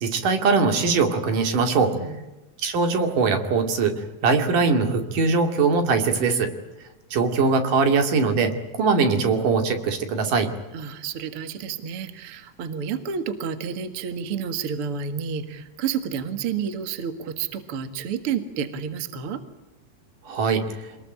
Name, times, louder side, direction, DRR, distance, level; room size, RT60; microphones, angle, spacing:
voice 1, 0.0-1.9 2.6-6.5 7.1-10.5 20.3-20.8, right 4 dB, 65° right, 6 dB, 3.9 m, -21 dB
voice 2, 1.9-2.2 10.7-19.4, right 7 dB, 50° right, 9 dB, 2.1 m, -30 dB
26.5 x 20.5 x 8.9 m, 1.0 s
omnidirectional pair, 4.1 m